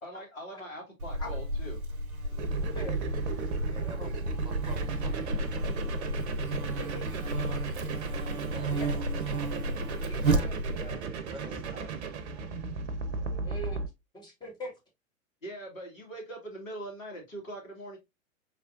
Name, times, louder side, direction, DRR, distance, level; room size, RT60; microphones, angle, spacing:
voice 1, 0.0-1.8 15.4-18.0, right 1 dB, 70° left, 1.9 m, -42 dB
Buzz, 1.0-11.0, right 1 dB, 85° right, 0.7 m, -32 dB
sound 1, 2.4-13.9, right 5 dB, 55° right, 0.8 m, -35 dB
voice 2, 2.6-3.0 4.0-4.1 6.8-7.6 8.7-8.9 10.1-11.7 13.2-14.7, equal, 10° left, 1.3 m, -43 dB
voice 3, 3.6-5.7 8.4-9.5 11.3-11.9, right 2 dB, 10° right, 1.1 m, -48 dB
4.3 x 3.3 x 2.4 m
figure-of-eight pair, 100°, 41 cm